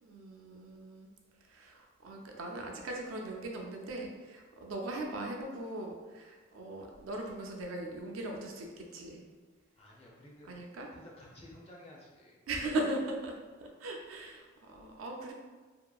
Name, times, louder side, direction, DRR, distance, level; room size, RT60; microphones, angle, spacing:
voice 1, 0.0-1.1 1.4-9.3 10.4-10.9 12.5-13.3 13.6-15.3, right 2 dB, 80° right, 0 dB, 0.4 m, -39 dB
voice 2, 9.8-10.6 10.9-12.4, left 1 dB, 30° left, -4 dB, 0.5 m, -53 dB
2.8 x 2.4 x 2.2 m, 1.4 s
head